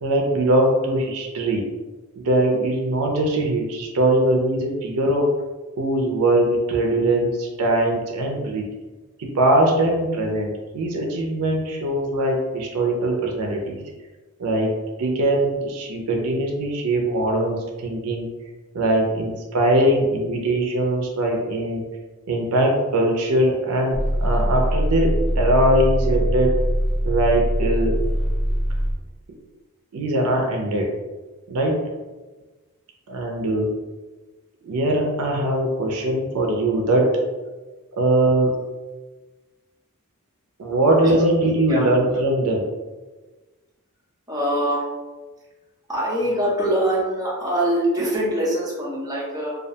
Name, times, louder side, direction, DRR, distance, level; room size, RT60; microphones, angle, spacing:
voice 1, 0.0-1.7 2.2-5.3 5.8-8.7 9.2-13.8 14.4-14.7 15.0-18.3 18.7-21.9 22.3-26.5 27.0-28.0 29.9-30.9 31.5-31.8 33.1-33.7 34.6-37.2 37.9-38.5 40.6-42.6, right 1 dB, 75° right, 1 dB, 0.4 m, -21 dB
sound 1, 23.9-29.0, equal, 30° left, 0.6 m, -22 dB
voice 2, 44.3-44.8 45.9-49.6, right 1 dB, 15° right, -6 dB, 0.7 m, -23 dB
2.3 x 2.1 x 2.7 m, 1.2 s
head